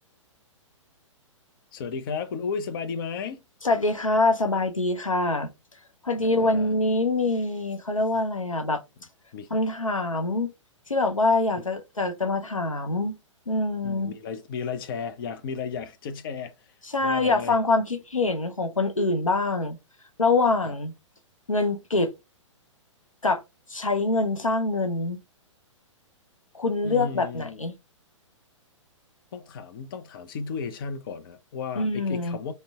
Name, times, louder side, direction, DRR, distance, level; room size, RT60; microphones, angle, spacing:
voice 1, 1.7-3.4 6.2-6.8 9.3-9.5 13.8-16.7 17.0-17.6 20.7-20.8 26.8-27.6 29.3-32.5, left 5 dB, 45° left, 0.5 m, -34 dB
voice 2, 3.6-5.5 6.0-8.8 9.5-10.5 10.9-13.1 13.5-14.1 16.8-19.8 20.2-20.9 21.5-22.1 23.2-23.4 23.7-25.2 26.5-27.7 31.8-32.4, left 2 dB, 90° left, 0.6 m, -24 dB
5.1 x 2.1 x 2.3 m
figure-of-eight pair, 115°, 17 cm